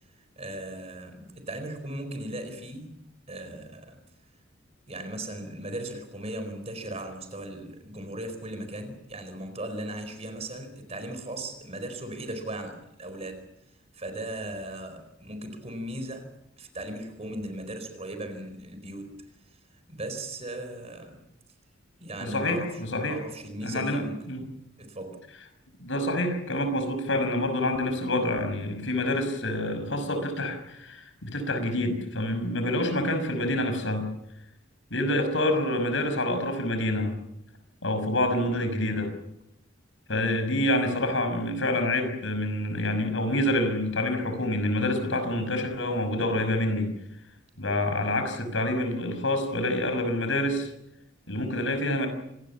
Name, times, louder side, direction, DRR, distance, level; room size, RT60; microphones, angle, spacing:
voice 1, 0.4-3.0 3.3-4.0 4.9-13.4 13.9-16.3 16.6-19.1 19.9-21.2 22.0-24.4 24.8-25.2 40.1-40.4, right 1 dB, 30° right, 8 dB, 4.5 m, -37 dB
voice 2, 22.2-23.2 23.6-24.4 25.8-34.1 34.9-37.1 37.8-39.1 40.1-46.9 47.6-50.7 51.3-52.1, left 1 dB, 70° left, 8 dB, 5.9 m, -27 dB
26.5 x 19.0 x 7.3 m, 0.81 s
head